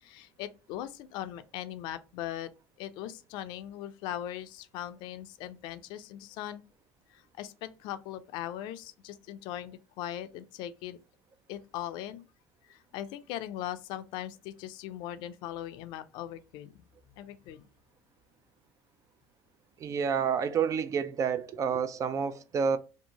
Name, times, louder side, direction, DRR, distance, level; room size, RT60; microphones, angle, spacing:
voice 1, 0.0-2.5 2.8-6.6 7.1-11.0 11.5-12.2 12.7-16.8 17.1-17.6, left 12 dB, 70° left, 0.4 m, -40 dB
voice 2, 19.8-22.8, right 6 dB, 40° right, 0.4 m, -29 dB
2.7 x 2.5 x 2.8 m
supercardioid pair, 85°, 8 cm